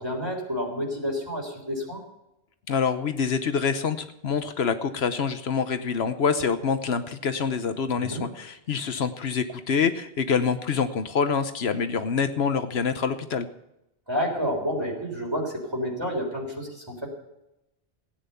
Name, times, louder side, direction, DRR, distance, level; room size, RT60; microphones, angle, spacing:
voice 1, 0.0-2.0 8.0-8.3 14.1-17.1, equal, 25° right, -2 dB, 3.7 m, -29 dB
voice 2, 2.7-13.5, left 6 dB, 75° left, 9 dB, 1.1 m, -26 dB
16.5 x 9.5 x 6.8 m, 0.86 s
omnidirectional pair, 1.1 m